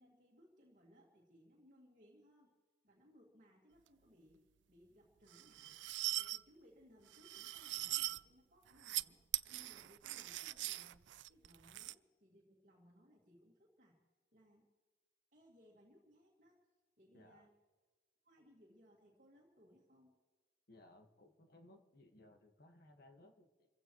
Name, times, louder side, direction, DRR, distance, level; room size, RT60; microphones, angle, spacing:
voice 1, 0.0-2.5 2.8-5.8 6.2-9.2 9.5-14.0 14.3-14.7 15.3-16.6 17.0-17.5 18.2-20.1, equal, 45° right, -3 dB, 2.1 m, -66 dB
sound 1, 5.3-6.4 7.1-8.2 8.7-9.0 9.3-11.9, right 16 dB, 70° right, 0.4 m, -41 dB
voice 2, 17.1-17.5 20.7-23.7, left 1 dB, 55° left, 5 dB, 1.6 m, -63 dB
28.0 x 15.5 x 3.1 m, 1.4 s
head